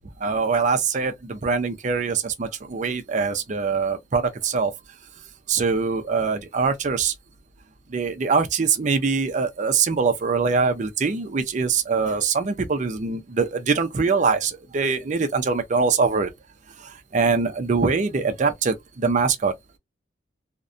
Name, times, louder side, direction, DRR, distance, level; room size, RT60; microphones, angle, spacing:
voice 1, 0.2-4.7 5.5-7.1 7.9-16.3 16.8-19.5, right 5 dB, 40° right, 0.4 m, -23 dB
2.6 x 2.1 x 2.4 m
head